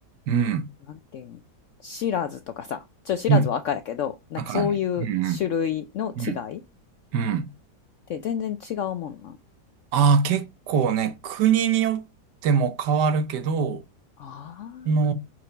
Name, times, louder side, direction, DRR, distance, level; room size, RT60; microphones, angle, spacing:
voice 1, 0.3-0.7 3.3-3.5 4.4-4.7 5.0-5.4 6.2-6.4 7.1-7.5 9.9-12.0 12.4-13.8 14.8-15.1, right 6 dB, 80° right, 1.4 m, -22 dB
voice 2, 0.9-1.4 1.8-6.6 8.1-9.4 14.2-15.1, left 8 dB, 75° left, 0.7 m, -29 dB
5.9 x 4.8 x 3.9 m
omnidirectional pair, 1.8 m